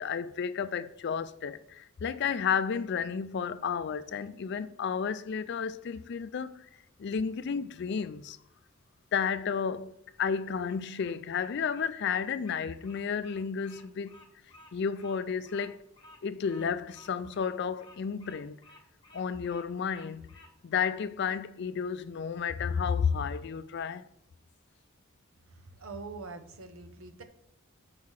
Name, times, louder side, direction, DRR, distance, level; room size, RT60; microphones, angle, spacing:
voice 1, 0.0-6.7 7.0-8.4 9.1-14.2 14.7-15.8 16.2-18.6 19.1-20.3 20.6-24.0, left 6 dB, 55° left, 0.4 m, -32 dB
Bird vocalization bird call bird song, 10.1-20.9, left 2 dB, 25° left, 1.3 m, -56 dB
voice 2, 25.5-27.2, right 3 dB, 85° right, 0.9 m, -44 dB
5.6 x 4.8 x 6.3 m
head